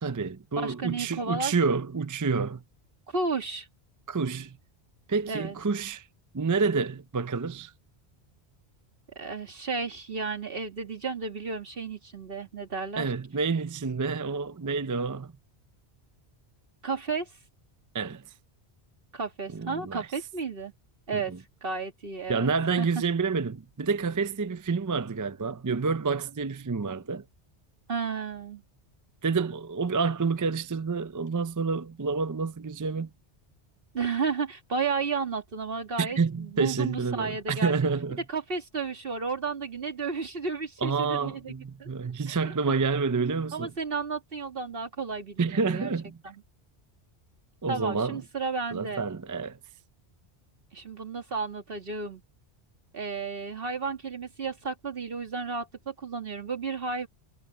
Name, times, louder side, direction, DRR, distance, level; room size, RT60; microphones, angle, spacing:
voice 1, 0.0-2.6 4.1-4.6 5.1-6.1 6.3-7.7 13.0-15.3 17.9-18.2 19.5-20.1 21.1-21.4 22.3-27.2 29.2-33.1 36.0-38.2 40.8-43.7 45.4-46.2 47.6-48.2 48.7-49.6, right 4 dB, 30° right, 0.4 m, -28 dB
voice 2, 0.6-1.8 3.1-3.7 5.3-5.6 9.2-13.1 16.8-17.4 19.1-20.7 21.1-21.3 21.6-22.5 22.8-22.9 27.9-28.6 33.9-37.7 38.3-41.5 41.8-41.9 42.3-42.5 43.5-45.9 46.2-46.4 47.7-49.0 50.7-52.2 52.9-57.1, right 4 dB, 60° right, 2.2 m, -33 dB
omnidirectional pair, 1.1 m